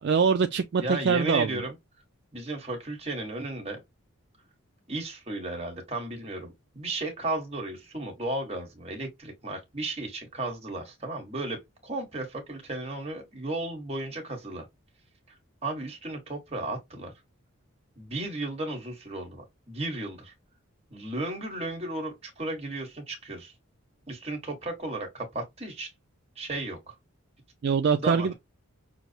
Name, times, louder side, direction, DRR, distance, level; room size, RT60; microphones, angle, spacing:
voice 1, 0.0-1.6 27.6-28.3, right 5 dB, 50° right, 0.3 m, -24 dB
voice 2, 0.8-1.7 2.3-3.8 4.9-14.7 15.6-17.1 18.0-20.3 20.9-23.5 24.1-25.9 26.3-26.9 28.0-28.3, right 2 dB, 30° right, 1.3 m, -34 dB
6.0 x 2.0 x 2.7 m
head